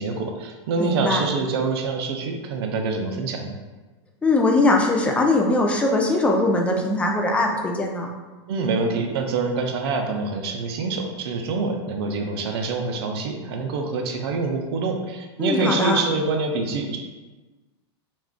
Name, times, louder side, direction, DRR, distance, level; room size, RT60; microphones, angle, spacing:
voice 1, 0.0-3.6 8.5-17.0, right 3 dB, 65° right, 3 dB, 0.5 m, -26 dB
voice 2, 0.8-1.3 4.2-8.1 15.4-16.0, left 2 dB, 10° left, 1 dB, 0.3 m, -21 dB
2.4 x 2.3 x 3.4 m, 1.2 s
supercardioid pair, 130°, 14 cm